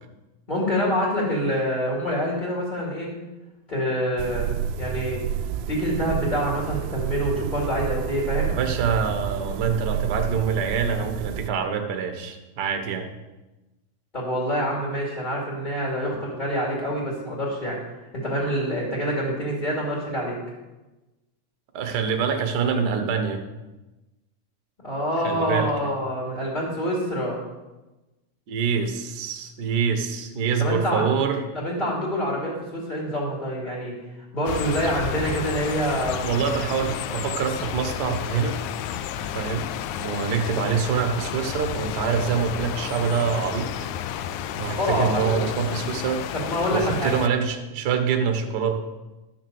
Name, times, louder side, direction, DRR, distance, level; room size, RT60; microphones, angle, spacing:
voice 1, 0.5-3.1 3.7-4.5 4.8-5.2 5.7-8.5 14.1-17.8 18.1-20.4 24.8-27.4 30.6-31.0 31.5-33.9 34.3-36.2 44.7-45.4 46.3-47.1, equal, 15° left, -4 dB, 2.6 m, -26 dB
sound 1, 4.2-11.5, right 9 dB, 80° right, 1.4 m, -30 dB
voice 2, 8.5-13.1 21.7-23.4 25.2-25.7 28.5-31.4 36.2-38.6 39.2-39.7 40.0-43.7 44.6-46.2 46.7-48.7, right 6 dB, 55° right, 5 dB, 1.2 m, -25 dB
sound 2, 34.5-47.3, left 10 dB, 85° left, 2.0 m, -31 dB
12.0 x 6.4 x 7.1 m, 1.1 s
omnidirectional pair, 3.4 m